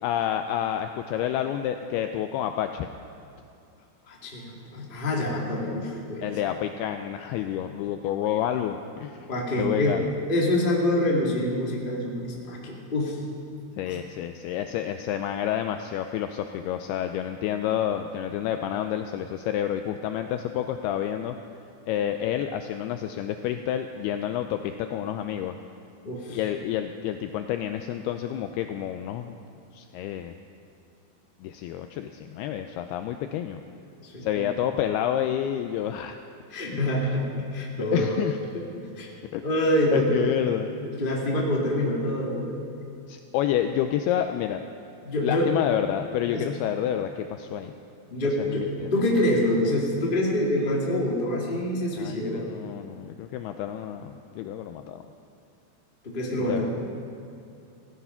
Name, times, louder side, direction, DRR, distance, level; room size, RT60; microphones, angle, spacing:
voice 1, 0.0-2.9 6.2-9.3 9.6-10.1 13.8-21.4 21.9-25.6 26.3-29.3 29.7-30.3 31.4-33.6 34.2-36.2 36.7-36.8 37.8-38.4 39.3-39.4 39.9-40.7 43.1-44.7 45.2-47.7 48.4-48.9 52.0-55.0 56.4-56.7, left 10 dB, 85° left, 7 dB, 2.3 m, -29 dB
voice 2, 4.1-6.3 9.3-10.0 10.3-13.2 13.9-14.0 26.0-26.4 34.0-34.4 36.5-38.2 38.7-39.1 39.4-40.2 40.8-42.6 45.0-45.5 46.3-46.4 48.1-52.5 56.0-56.7, left 1 dB, 20° left, -3 dB, 1.4 m, -26 dB
16.0 x 15.0 x 5.7 m, 2.6 s
omnidirectional pair, 5.0 m